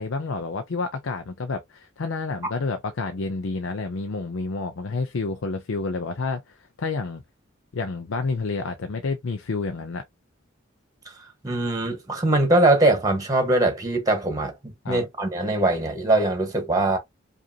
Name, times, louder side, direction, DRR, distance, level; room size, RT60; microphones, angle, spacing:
voice 1, 0.0-7.2 7.7-10.0 14.8-15.0, left 3 dB, 80° left, 0.6 m, -29 dB
voice 2, 11.0-17.0, right 2 dB, 20° right, 1.2 m, -22 dB
5.0 x 2.6 x 2.7 m
head